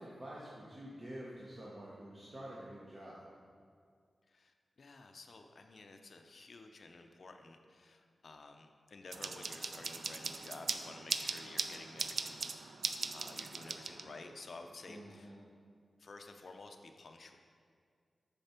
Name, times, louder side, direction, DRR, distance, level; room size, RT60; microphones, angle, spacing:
voice 1, 0.0-3.3 14.9-15.4, right 1 dB, 25° right, -6 dB, 0.9 m, -48 dB
voice 2, 4.3-12.5 13.1-15.4 16.0-17.4, left 3 dB, 50° left, 5 dB, 0.5 m, -52 dB
sound 1, 9.1-14.4, right 4 dB, 65° right, 0.3 m, -40 dB
6.7 x 5.8 x 4.3 m, 2.1 s
wide cardioid pair, 175°, 0 cm